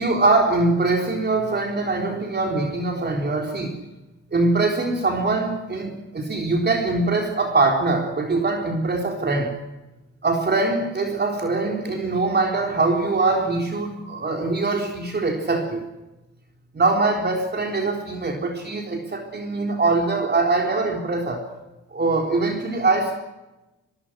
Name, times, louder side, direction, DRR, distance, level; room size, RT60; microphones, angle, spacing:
voice 1, 0.0-3.8 4.3-9.5 10.2-15.8 16.7-21.4 21.9-23.2, right 3 dB, 35° right, 3.8 m, -22 dB
24.0 x 23.0 x 6.2 m
cardioid pair, 90°, 30 cm